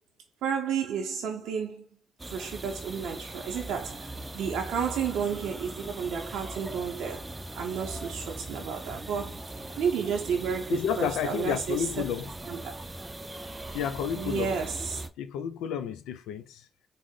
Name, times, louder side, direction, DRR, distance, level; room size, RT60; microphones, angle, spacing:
voice 1, 0.4-1.9 2.3-11.9 12.5-12.7 14.1-15.0, right 7 dB, 80° right, 0.5 m, -32 dB
sound 1, 2.2-15.1, right 2 dB, 15° right, 0.5 m, -40 dB
voice 2, 10.7-12.3 13.7-14.6 15.2-16.7, left 8 dB, 90° left, 0.3 m, -31 dB
3.6 x 2.0 x 3.6 m
supercardioid pair, 60°, 0 cm